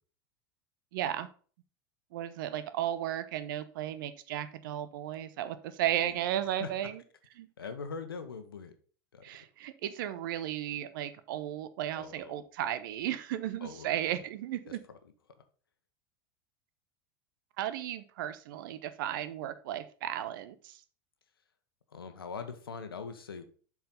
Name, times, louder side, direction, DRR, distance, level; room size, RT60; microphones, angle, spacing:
voice 1, 0.9-1.3 2.1-7.0 7.4-7.5 9.2-14.8 17.6-20.8, right 11 dB, 65° right, 13 dB, 0.8 m, -35 dB
voice 2, 7.6-8.7 9.1-9.3 11.9-12.4 13.6-13.9 14.7-14.8 21.9-23.4, left 5 dB, 85° left, 8 dB, 1.1 m, -42 dB
7.5 x 4.8 x 5.4 m, 0.42 s
hypercardioid pair, 85°, 12 cm